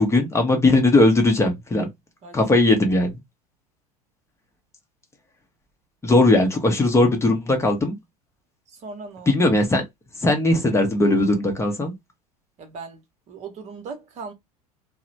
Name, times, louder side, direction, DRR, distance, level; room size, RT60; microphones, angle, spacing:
voice 1, 0.0-1.9 2.3-3.1 6.0-7.9 9.3-9.8 10.2-11.9, left 2 dB, 15° left, 0.7 m, -18 dB
voice 2, 8.7-9.4 12.6-13.0 13.3-14.3, right 4 dB, 35° right, 0.9 m, -38 dB
2.9 x 2.0 x 2.7 m
figure-of-eight pair, 75°, 20 cm